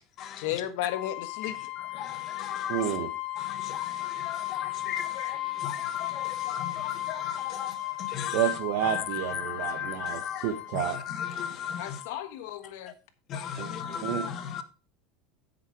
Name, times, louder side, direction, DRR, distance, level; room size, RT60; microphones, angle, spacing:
voice 1, 0.4-1.6 11.8-12.9, left 12 dB, 75° left, 1.2 m, -34 dB
sound 1, 0.9-12.3, left 16 dB, 55° left, 3.1 m, -36 dB
voice 2, 2.0-2.9 3.4-8.5 8.8-12.0 13.3-14.6, left 8 dB, 40° left, 1.2 m, -36 dB
voice 3, 2.7-3.1 8.3-11.0 13.6-14.2, right 11 dB, 65° right, 1.3 m, -30 dB
8.0 x 6.6 x 4.9 m
supercardioid pair, 135°, 0 cm